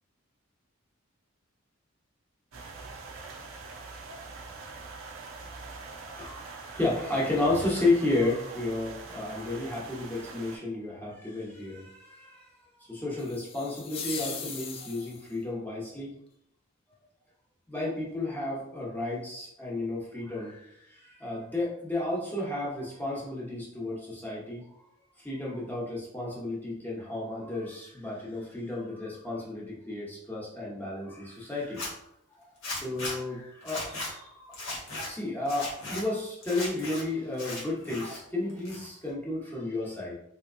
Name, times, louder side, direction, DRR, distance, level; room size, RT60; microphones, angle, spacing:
sound 1, 2.5-10.6, right 3 dB, 70° right, 0.6 m, -44 dB
voice 1, 6.2-12.5 12.8-16.1 17.7-24.6 25.2-31.9 32.4-34.6 35.0-40.1, left 2 dB, 10° left, -5 dB, 0.9 m, -32 dB
sound 2, 13.2-15.4, left 6 dB, 30° left, 0.3 m, -39 dB
Zipper (clothing), 31.6-31.9 32.6-33.1 33.6-34.1 34.5-35.1 35.4-36.0 36.4-37.0 37.3-38.2 38.5-39.1, left 2 dB, 90° left, 1.2 m, -37 dB
3.4 x 2.8 x 2.5 m, 0.78 s
head